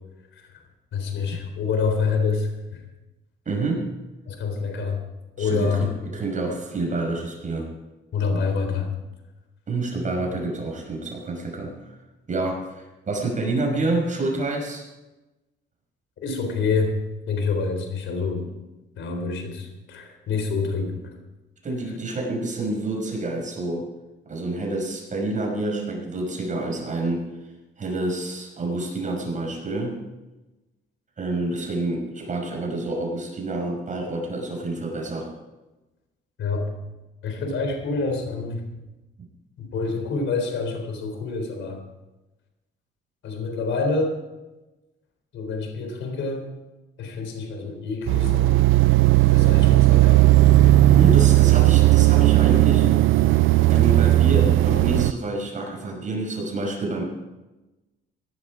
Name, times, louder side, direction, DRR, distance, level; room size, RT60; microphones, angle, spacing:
voice 1, 0.9-2.8 4.3-5.0 5.4-5.9 8.1-8.9 16.2-16.9 17.3-18.5 19.0-21.0 36.4-36.7 37.2-38.6 39.6-41.8 43.2-44.2 45.3-46.5 47.0-48.7 49.3-50.3, left 4 dB, 75° left, 5 dB, 3.8 m, -27 dB
voice 2, 3.5-3.9 5.4-7.7 9.7-11.9 12.3-14.9 21.6-23.8 24.3-27.3 27.8-30.0 31.2-35.3 50.9-52.9 53.7-57.0, right 2 dB, 40° right, 0 dB, 5.8 m, -28 dB
sound 1, 48.1-55.1, right 16 dB, 85° right, 0.5 m, -16 dB
17.0 x 11.5 x 5.0 m, 1.1 s
cardioid pair, 90°, 20 cm